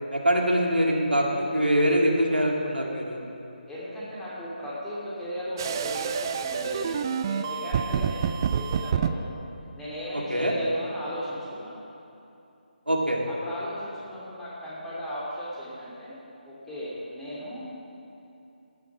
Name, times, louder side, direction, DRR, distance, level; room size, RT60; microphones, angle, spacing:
voice 1, 0.1-3.2 10.1-10.5 12.9-13.2, equal, 85° right, -1 dB, 2.5 m, -24 dB
voice 2, 3.7-9.3 9.7-11.8 13.3-16.1 16.4-17.7, equal, 5° left, -9 dB, 2.8 m, -36 dB
sound 1, 5.6-9.1, right 7 dB, 25° right, 0.4 m, -28 dB
14.0 x 11.0 x 6.1 m, 2.7 s
figure-of-eight pair, 150°, 5 cm